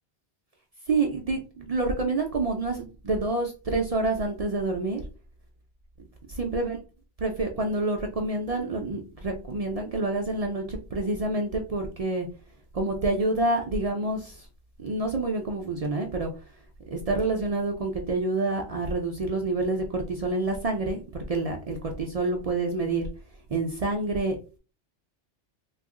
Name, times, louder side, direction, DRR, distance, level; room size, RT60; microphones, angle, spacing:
voice 1, 0.9-5.0 6.3-6.8 7.2-12.3 12.7-14.5 14.8-16.3 16.9-23.1 23.5-24.6, right 2 dB, 55° right, 3 dB, 0.4 m, -28 dB
2.8 x 2.4 x 3.6 m, 0.34 s
omnidirectional pair, 1.1 m